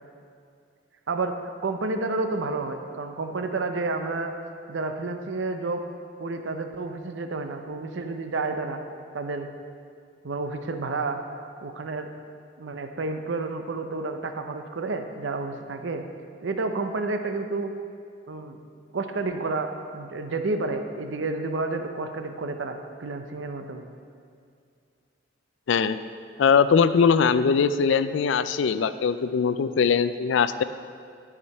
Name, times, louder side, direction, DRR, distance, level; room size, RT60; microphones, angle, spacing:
voice 1, 1.1-4.3 4.7-5.8 6.2-8.8 9.1-9.5 10.2-11.2 11.6-12.1 12.6-16.0 16.4-17.7 18.3-18.6 18.9-23.9, right 3 dB, 70° right, 6 dB, 0.6 m, -30 dB
voice 2, 26.4-30.6, left 6 dB, 75° left, 13 dB, 0.4 m, -21 dB
12.5 x 5.0 x 5.6 m, 2.3 s
head